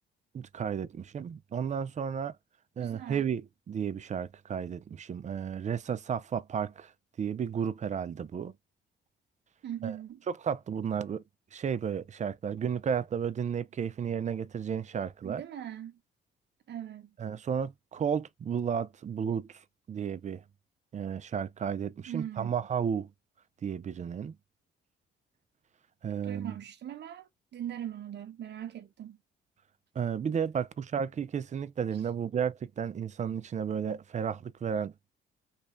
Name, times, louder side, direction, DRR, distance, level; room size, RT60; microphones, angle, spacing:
voice 1, 0.3-2.4 2.8-6.9 7.2-8.5 9.8-10.0 10.3-11.2 11.5-15.4 17.2-19.6 19.9-20.4 20.9-23.1 23.6-24.4 26.0-26.6 30.0-34.9, right 7 dB, 35° right, 0.5 m, -33 dB
voice 2, 2.8-3.2 9.6-10.2 15.2-16.0 16.7-17.1 22.1-22.5 26.2-29.2, right 10 dB, 60° right, 0.9 m, -40 dB
3.2 x 2.7 x 3.1 m
cardioid pair, 90°, 20 cm